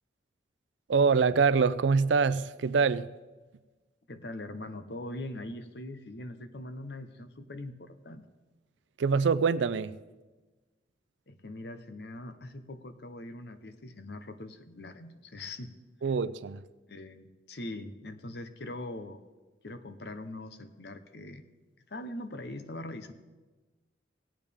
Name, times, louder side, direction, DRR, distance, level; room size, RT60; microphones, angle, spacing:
voice 1, 0.9-3.1 9.0-10.0 16.0-16.6, right 5 dB, 90° right, 0.4 m, -25 dB
voice 2, 4.1-8.2 11.3-15.7 16.9-19.2 19.6-21.5 21.9-23.1, left 1 dB, 65° left, 0.8 m, -42 dB
18.0 x 8.8 x 3.5 m
head